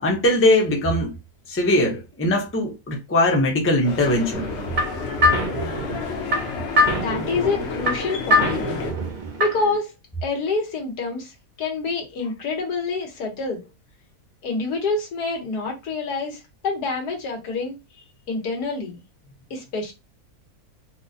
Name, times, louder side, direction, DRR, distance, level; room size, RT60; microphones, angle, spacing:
voice 1, 0.0-1.1 1.5-4.5, left 1 dB, 15° left, 0.4 m, -20 dB
sound 1, 3.8-8.9, left 5 dB, 60° left, 0.8 m, -31 dB
sound 2, 4.3-9.8, left 1 dB, 65° right, 0.4 m, -24 dB
voice 2, 6.9-8.6 9.4-9.9 10.2-13.6 14.4-17.8 18.3-19.0 19.5-19.9, left 3 dB, 90° left, 1.6 m, -27 dB
4.3 x 2.1 x 2.7 m
omnidirectional pair, 1.6 m